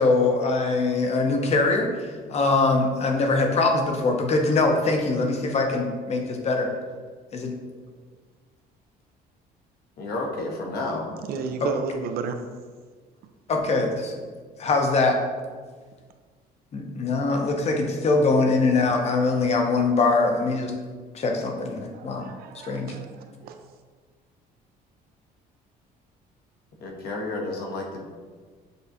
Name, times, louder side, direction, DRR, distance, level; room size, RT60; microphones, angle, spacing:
voice 1, 0.0-1.9 2.3-6.7 7.3-7.5 11.6-11.7 13.5-14.1 14.6-15.2 16.7-20.7 21.1-22.3 22.6-22.9, left 3 dB, 40° left, 3 dB, 0.7 m, -22 dB
voice 2, 10.0-11.1 26.8-28.1, left 2 dB, 65° left, 0 dB, 0.9 m, -31 dB
voice 3, 11.3-12.4 21.9-23.6, right 5 dB, 65° right, 7 dB, 0.4 m, -32 dB
6.5 x 2.4 x 2.7 m, 1.5 s
cardioid pair, 110°, 17 cm